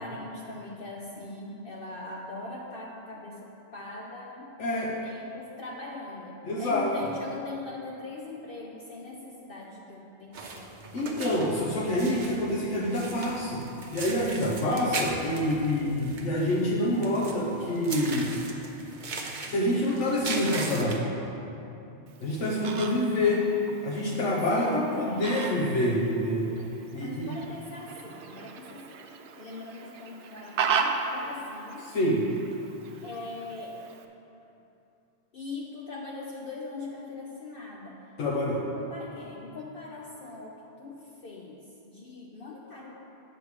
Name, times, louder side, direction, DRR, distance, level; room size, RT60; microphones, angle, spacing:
voice 1, 0.0-11.2 22.8-23.5 24.3-25.7 27.0-29.0 29.4-31.9 33.0-33.8 35.3-38.0 38.7-42.9, left 3 dB, 55° left, -2 dB, 0.8 m, -41 dB
voice 2, 4.6-4.9 6.5-6.9 10.9-13.6 13.9-18.3 19.5-21.1 22.2-23.5 23.8-26.5 26.9-27.3 31.9-32.2 38.2-38.6, left 1 dB, 75° left, -5 dB, 1.2 m, -27 dB
sound 1, 10.3-21.0, right 3 dB, 45° right, 0.8 m, -38 dB
Fowl, 22.1-34.1, right 5 dB, 70° right, 0.9 m, -36 dB
8.3 x 6.8 x 4.8 m, 2.9 s
omnidirectional pair, 1.2 m